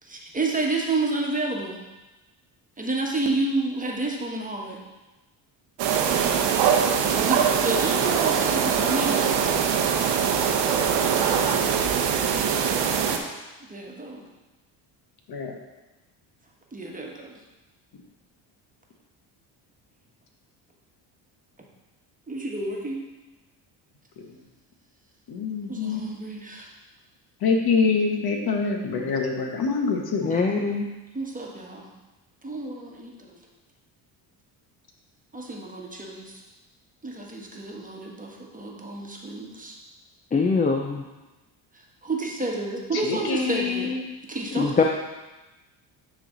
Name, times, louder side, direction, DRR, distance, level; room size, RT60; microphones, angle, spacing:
voice 1, 0.0-1.8 2.8-4.8 7.2-9.4 13.6-14.2 16.7-17.4 22.3-23.0 25.7-26.7 31.1-31.9 32.4-33.4 35.3-36.4 37.0-39.8 42.0-44.0 44.3-44.8, right 2 dB, 15° right, -1 dB, 1.3 m, -30 dB
sound 1, 5.8-13.2, right 7 dB, 65° right, 0.9 m, -22 dB
voice 2, 25.3-26.1 27.4-30.3 42.9-44.0, left 4 dB, 50° left, 3 dB, 1.2 m, -25 dB
voice 3, 30.2-30.9 40.3-41.0 44.5-44.8, left 4 dB, 20° left, 2 dB, 0.5 m, -23 dB
9.3 x 3.3 x 3.8 m, 1.1 s
supercardioid pair, 70°, 48 cm